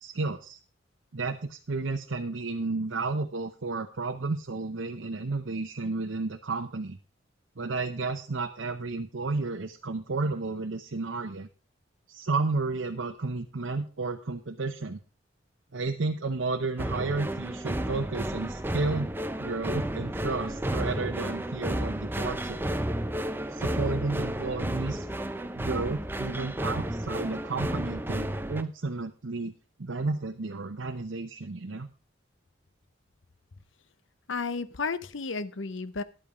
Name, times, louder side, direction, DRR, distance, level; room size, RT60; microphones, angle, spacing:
voice 1, 0.0-0.6 1.1-7.0 7.6-11.5 12.1-15.0 15.7-19.1 19.4-22.6 23.5-25.1 25.5-29.5 29.8-31.9, right 3 dB, 80° right, 4 dB, 0.8 m, -32 dB
sound 1, 16.8-28.6, right 1 dB, 10° right, 0.7 m, -32 dB
voice 2, 34.3-36.0, left 4 dB, 75° left, 15 dB, 0.8 m, -32 dB
11.0 x 8.6 x 5.0 m, 0.35 s
head